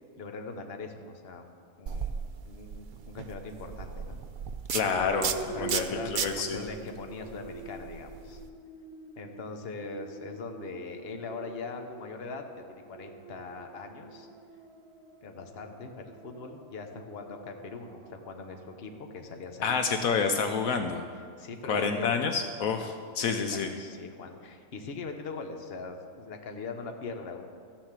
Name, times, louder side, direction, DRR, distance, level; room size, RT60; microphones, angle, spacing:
voice 1, 0.2-1.5 1.8-4.2 5.0-8.4 9.2-14.3 15.2-19.9 21.4-22.4 22.8-23.0 23.2-27.4, left 4 dB, 45° left, 5 dB, 1.2 m, -41 dB
sound 1, 1.9-8.5, right 7 dB, 80° right, 0.4 m, -36 dB
voice 2, 4.7-6.6 19.6-21.0 21.7-23.7, left 5 dB, 75° left, 6 dB, 1.1 m, -28 dB
sound 2, 4.8-19.0, right 4 dB, 20° right, 1.5 m, -46 dB
13.5 x 7.2 x 7.5 m, 2.1 s
omnidirectional pair, 1.5 m